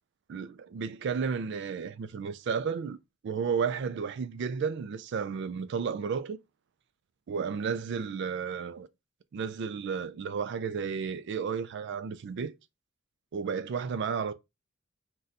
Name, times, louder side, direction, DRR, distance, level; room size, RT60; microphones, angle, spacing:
voice 1, 0.3-3.0 3.2-6.4 7.3-8.9 9.3-12.5 13.3-14.3, right 6 dB, 55° right, 0.3 m, -32 dB
2.5 x 2.3 x 4.0 m
head